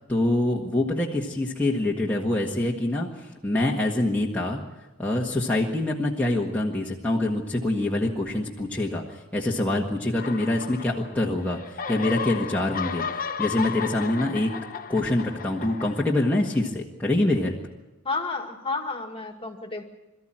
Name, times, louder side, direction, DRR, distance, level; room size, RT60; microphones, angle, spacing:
voice 1, 0.1-4.6 5.0-13.0 13.4-14.5 14.9-17.6, left 1 dB, 10° left, -4 dB, 1.6 m, -25 dB
sound 1, 10.2-11.3 11.6-16.6, left 6 dB, 45° left, 1.0 m, -34 dB
voice 2, 18.0-19.8, left 3 dB, 25° left, 4 dB, 2.1 m, -31 dB
22.5 x 13.5 x 8.9 m, 1.1 s
head